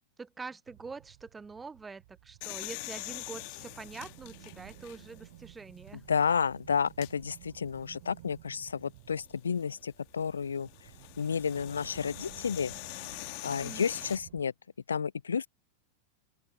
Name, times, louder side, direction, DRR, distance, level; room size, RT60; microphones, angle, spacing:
voice 1, 0.2-6.0 13.6-13.9, right 4 dB, 15° right, 0.8 m, -45 dB
sound 1, 0.7-14.4, right 19 dB, 50° right, 5.0 m, -54 dB
sound 2, 2.4-5.3 5.9-6.0 6.9-7.1 9.3-14.2, left 33 dB, 45° left, 1.9 m, -44 dB
voice 2, 6.1-10.7 11.2-12.7 13.4-14.5 14.9-15.5, left 6 dB, 70° left, 0.9 m, -31 dB
open air
figure-of-eight pair, 90°, 0 cm